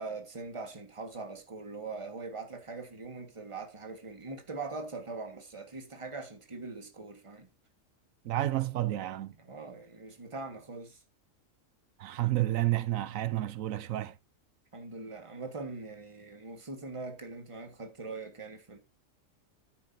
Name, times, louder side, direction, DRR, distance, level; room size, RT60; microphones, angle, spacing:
voice 1, 0.0-7.5 9.4-11.0 13.0-13.1 14.7-18.8, right 3 dB, 25° right, 1.6 m, -42 dB
voice 2, 8.2-9.3 12.0-14.1, right 15 dB, 85° right, 1.1 m, -30 dB
9.8 x 9.4 x 2.7 m
omnidirectional pair, 1.4 m